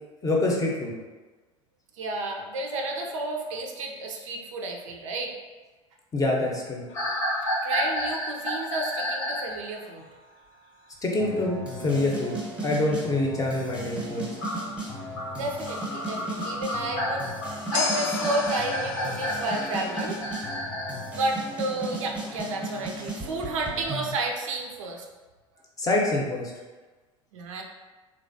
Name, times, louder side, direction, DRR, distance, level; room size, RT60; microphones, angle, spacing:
voice 1, 0.2-0.9 6.1-6.8 11.0-12.3 12.6-14.3 25.8-26.5, left 2 dB, 20° left, -1 dB, 0.6 m, -25 dB
voice 2, 1.9-5.3 7.6-10.1 11.8-12.1 15.3-17.3 17.7-20.2 21.1-25.1 27.3-27.6, right 2 dB, 75° right, 1 dB, 0.4 m, -31 dB
sound 1, 6.9-9.5 14.4-21.0, left 1 dB, 85° left, 0.8 m, -31 dB
sound 2, 6.9-9.9 17.7-20.2, left 4 dB, 60° left, 0.4 m, -35 dB
sound 3, 11.2-24.1, right 1 dB, 5° right, 0.8 m, -36 dB
3.1 x 2.3 x 2.6 m, 1.3 s
hypercardioid pair, 70°, 17 cm